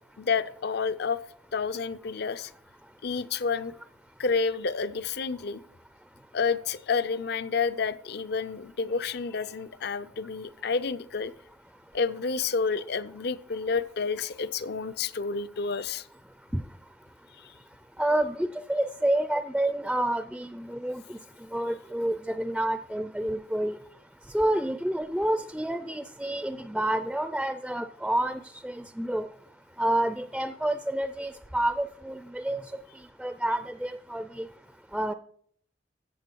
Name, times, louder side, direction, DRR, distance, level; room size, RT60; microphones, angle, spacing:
voice 1, 0.2-1.2 1.5-2.5 3.0-3.7 4.2-5.6 6.3-11.3 11.9-16.1 17.4-17.5, left 5 dB, 60° left, 15 dB, 0.5 m, -29 dB
voice 2, 18.0-21.2 21.5-23.8 24.3-29.3 29.8-32.6 33.2-34.5 34.9-35.1, right 1 dB, 5° right, 11 dB, 0.4 m, -29 dB
14.5 x 7.7 x 4.5 m, 0.62 s
head